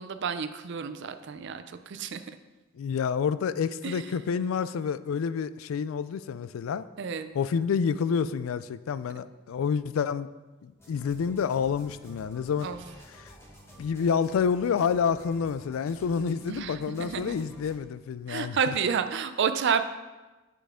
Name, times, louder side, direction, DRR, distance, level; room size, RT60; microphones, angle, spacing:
voice 1, 0.0-2.2 3.8-4.0 7.0-7.3 12.6-12.8 16.5-17.4 18.3-19.8, right 6 dB, 60° right, 10 dB, 0.5 m, -30 dB
voice 2, 2.8-6.9 7.3-10.3 10.6-12.7 13.8-18.7, left 6 dB, 80° left, 15 dB, 0.3 m, -28 dB
sound 1, 10.8-17.8, equal, 15° left, 1.5 m, -51 dB
7.7 x 6.7 x 3.7 m, 1.2 s
head